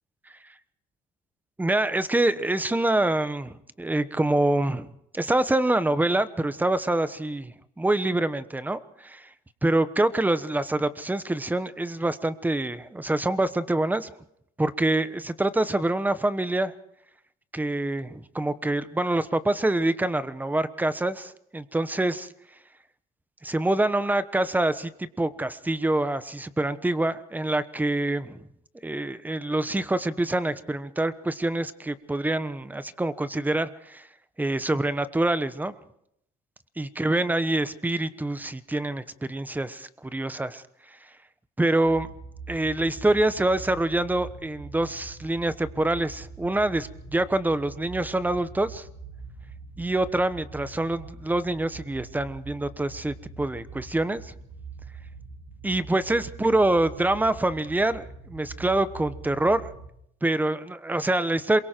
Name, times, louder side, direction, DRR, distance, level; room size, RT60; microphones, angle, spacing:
voice 1, 1.6-4.9 5.1-9.3 9.6-14.1 14.6-16.7 17.5-22.3 23.4-28.4 28.8-34.1 34.4-35.7 36.8-41.0 41.6-42.1 42.5-48.9 49.8-54.3 55.6-59.7 60.2-61.6, right 2 dB, 10° right, 14 dB, 1.1 m, -26 dB
sound 1, 41.8-59.9, right 4 dB, 75° right, 4.4 m, -43 dB
27.0 x 23.0 x 4.6 m, 0.74 s
cardioid pair, 110°, 17 cm